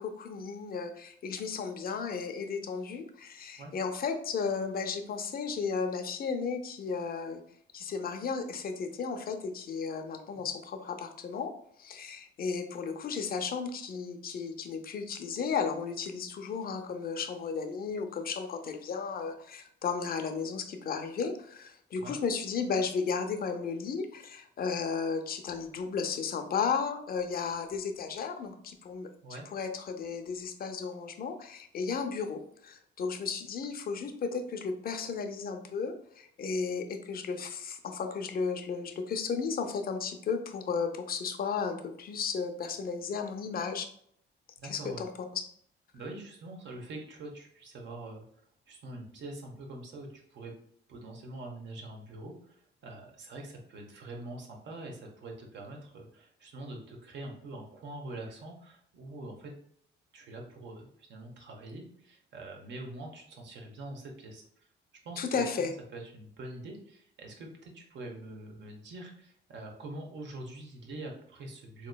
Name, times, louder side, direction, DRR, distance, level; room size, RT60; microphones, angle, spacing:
voice 1, 0.0-7.4 7.7-11.5 11.8-43.9 44.6-45.4 65.2-65.7, left 5 dB, 50° left, 6 dB, 0.5 m, -34 dB
voice 2, 44.6-45.0 45.9-48.2 48.7-50.5 50.9-52.6 52.8-59.5 60.1-64.4 65.0-71.9, right 2 dB, 65° right, 1 dB, 0.9 m, -44 dB
3.8 x 2.9 x 2.2 m, 0.65 s
cardioid pair, 90°, 20 cm